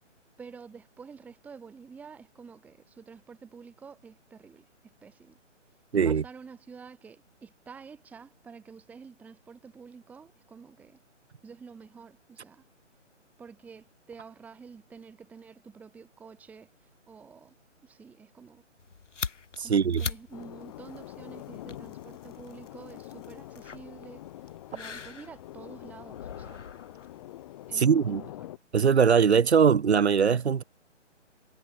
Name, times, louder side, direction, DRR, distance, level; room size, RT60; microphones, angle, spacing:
voice 1, 0.4-5.4 5.9-11.0 11.4-12.6 13.4-17.5 17.8-18.6 19.6-26.6 27.7-28.5, right 5 dB, 5° right, 1.7 m, -49 dB
voice 2, 5.9-6.2 19.6-20.0 27.7-28.2 28.7-30.6, right 6 dB, 60° right, 2.6 m, -21 dB
sound 1, 18.8-28.0, left 5 dB, 75° left, 3.2 m, -43 dB
sound 2, 20.3-28.6, left 15 dB, 25° left, 3.3 m, -45 dB
hypercardioid pair, 160°, 37 cm